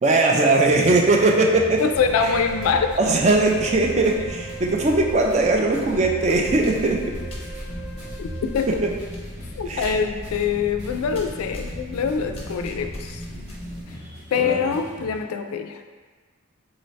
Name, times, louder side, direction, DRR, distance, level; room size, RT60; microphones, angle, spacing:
voice 1, 0.0-1.8 2.2-2.3 3.0-7.1 8.8-8.9 9.7-10.0 14.4-14.7, right 2 dB, 30° right, 1 dB, 0.3 m, -20 dB
sound 1, 0.6-15.2, equal, 50° right, 1.0 m, -38 dB
voice 2, 1.8-3.0 8.2-8.3 8.5-8.8 9.6-13.2 14.3-15.9, left 6 dB, 80° left, 7 dB, 0.3 m, -24 dB
sound 2, 1.9-8.8, right 2 dB, 5° left, 1.1 m, -38 dB
sound 3, 6.5-13.8, left 1 dB, 30° left, 0.6 m, -38 dB
3.8 x 2.7 x 3.2 m, 1.4 s
head